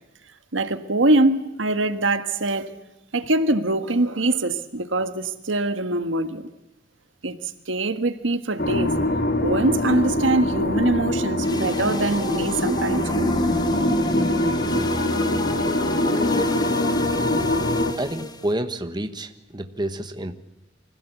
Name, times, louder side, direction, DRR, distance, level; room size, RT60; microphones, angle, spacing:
voice 1, 0.5-2.8 3.1-6.4 7.2-7.3 7.7-8.9 9.4-13.4, right 2 dB, 75° right, 1.5 m, -23 dB
sound 1, 8.6-17.9, left 1 dB, 55° left, 1.9 m, -23 dB
sound 2, 11.4-18.5, left 2 dB, 20° left, 1.3 m, -32 dB
voice 2, 18.0-20.3, right 1 dB, 25° right, 1.2 m, -29 dB
25.0 x 16.5 x 8.3 m
head